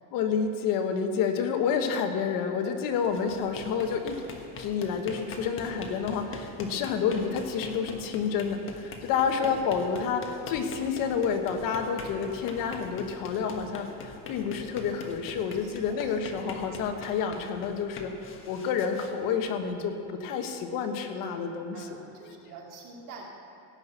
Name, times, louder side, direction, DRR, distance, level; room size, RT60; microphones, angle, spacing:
voice 1, 0.1-4.2 4.6-21.9, left 6 dB, 60° left, 5 dB, 1.3 m, -29 dB
sound 1, 2.9-19.9, left 3 dB, 35° left, 1.4 m, -43 dB
voice 2, 9.4-9.7 15.6-16.0 16.3-16.4 21.4-23.2, right 4 dB, 60° right, -1 dB, 2.7 m, -46 dB
17.0 x 6.0 x 8.1 m, 2.5 s
cardioid pair, 145°, 37 cm